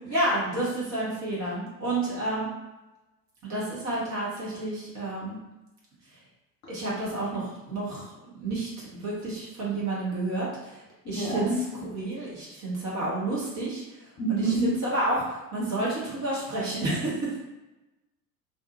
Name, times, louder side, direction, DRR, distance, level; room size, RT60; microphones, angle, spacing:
voice 1, 0.0-2.5 3.5-5.4 6.1-6.2 6.7-17.4, right 2 dB, 35° right, -6 dB, 1.1 m, -30 dB
voice 2, 11.0-11.5 14.2-14.7, right 2 dB, 35° left, -6 dB, 1.1 m, -27 dB
2.6 x 2.3 x 2.6 m, 1.0 s
figure-of-eight pair, 70°, 49 cm